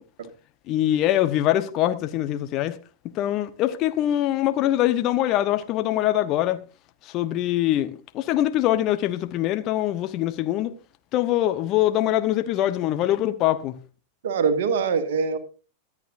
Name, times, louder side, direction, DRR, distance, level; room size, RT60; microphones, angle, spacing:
voice 1, 0.7-2.8 3.1-6.6 7.0-10.7 11.1-13.8, left 13 dB, 35° left, 1.0 m, -23 dB
voice 2, 14.2-15.4, right 5 dB, 55° right, 1.7 m, -23 dB
24.0 x 8.6 x 2.6 m
figure-of-eight pair, 90°, 0 cm